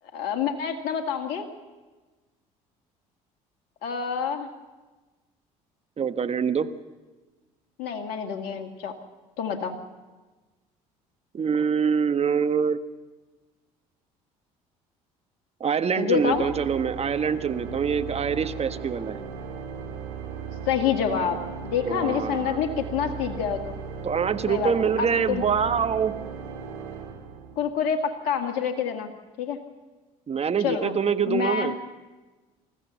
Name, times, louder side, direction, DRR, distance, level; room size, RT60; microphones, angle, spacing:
voice 1, 0.1-1.5 3.8-4.5 7.8-9.0 9.4-9.8 16.0-16.4 20.6-23.8 24.5-25.4 27.6-29.1 29.4-29.6 30.6-31.0 31.3-31.7, left 7 dB, 65° left, 4 dB, 1.9 m, -27 dB
voice 2, 6.0-6.7 11.3-12.8 15.6-19.2 21.8-22.6 24.0-26.1 30.3-31.7, right 6 dB, 35° right, 10 dB, 1.3 m, -25 dB
Organ, 16.1-27.9, right 6 dB, 80° right, 2.0 m, -37 dB
27.0 x 14.5 x 7.0 m, 1.2 s
hypercardioid pair, 60°, 18 cm